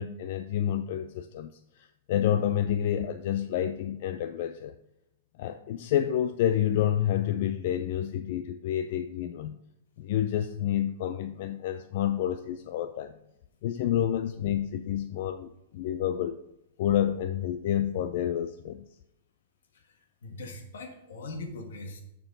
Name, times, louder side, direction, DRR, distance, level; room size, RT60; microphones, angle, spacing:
voice 1, 0.0-4.7 5.4-9.6 10.0-13.1 13.6-16.4 16.8-18.8, left 10 dB, 55° left, 0.4 m, -29 dB
voice 2, 19.7-22.0, left 2 dB, 85° left, 1.7 m, -41 dB
12.0 x 4.6 x 3.9 m
hypercardioid pair, 145°, 0 cm